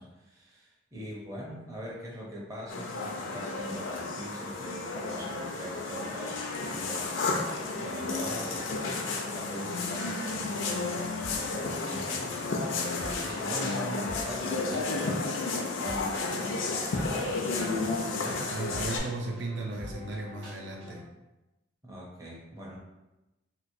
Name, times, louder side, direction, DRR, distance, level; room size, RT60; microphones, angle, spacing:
voice 1, 0.0-7.1 7.8-15.3 15.8-18.5 21.8-22.8, equal, 15° right, -4 dB, 0.6 m, -42 dB
sound 1, 2.7-19.0, left 3 dB, 85° left, 0.5 m, -32 dB
sound 2, 7.6-21.0, equal, 85° right, 1.3 m, -46 dB
voice 2, 18.5-21.1, right 2 dB, 70° right, -1 dB, 0.5 m, -36 dB
2.9 x 2.9 x 2.6 m, 0.99 s
head